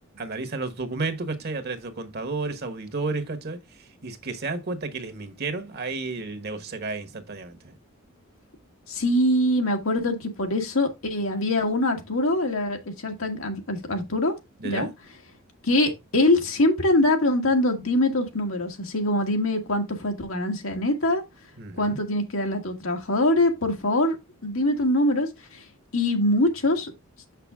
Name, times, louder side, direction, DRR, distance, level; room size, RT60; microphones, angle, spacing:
voice 1, 0.1-7.7 14.6-14.9 21.6-22.0, right 3 dB, 50° right, 1.3 m, -32 dB
voice 2, 8.9-14.3 14.6-14.9 15.6-21.2 21.8-25.3 25.9-26.9, left 1 dB, 80° left, 1.7 m, -23 dB
6.7 x 5.9 x 3.5 m
head